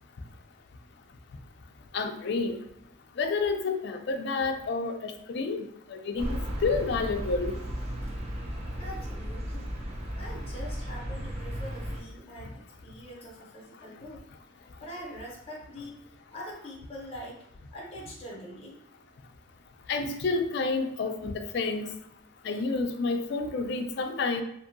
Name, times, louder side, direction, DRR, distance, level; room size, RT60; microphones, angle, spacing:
voice 1, 1.9-2.6 3.2-7.5 19.9-21.9 22.4-24.4, left 4 dB, 55° left, 5 dB, 0.3 m, -29 dB
sound 1, 6.2-12.0, equal, 30° right, 0.3 m, -35 dB
voice 2, 8.8-9.7 10.2-14.2 14.8-16.0 16.3-18.8, equal, 30° left, -3 dB, 0.7 m, -43 dB
2.6 x 2.6 x 2.5 m, 0.75 s
head